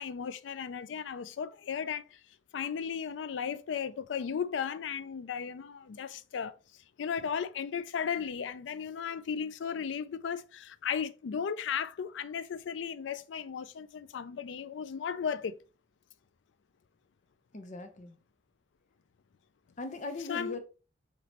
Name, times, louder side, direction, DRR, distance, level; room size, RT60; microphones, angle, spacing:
voice 1, 0.0-2.2 2.5-6.6 7.0-15.6 20.3-20.6, left 7 dB, 90° left, 0.4 m, -35 dB
voice 2, 17.5-18.2 19.8-20.6, left 2 dB, 45° left, 0.8 m, -39 dB
5.0 x 3.0 x 2.9 m
head